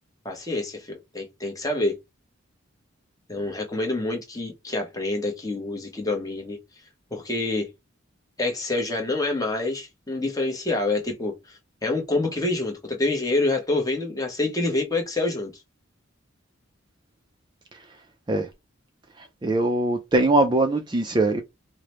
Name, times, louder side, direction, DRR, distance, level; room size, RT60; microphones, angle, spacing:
voice 1, 0.2-1.9 3.3-6.6 7.1-7.7 8.4-11.3 11.8-15.5, left 2 dB, 15° left, 1.0 m, -27 dB
voice 2, 19.2-21.4, right 2 dB, 20° right, 0.4 m, -22 dB
4.8 x 2.1 x 2.9 m
head